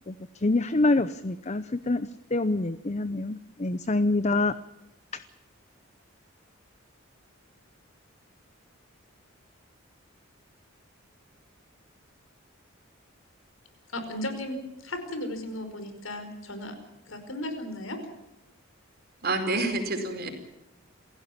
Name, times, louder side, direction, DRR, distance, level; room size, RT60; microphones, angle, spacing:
voice 1, 0.1-4.6 5.1-5.2, left 2 dB, 35° left, 14 dB, 0.7 m, -26 dB
voice 2, 13.9-14.6 14.8-16.7 17.1-18.0, left 1 dB, 75° left, 8 dB, 5.0 m, -35 dB
voice 3, 19.2-20.3, right 2 dB, 50° right, 5 dB, 4.6 m, -28 dB
28.0 x 16.5 x 7.2 m, 0.93 s
head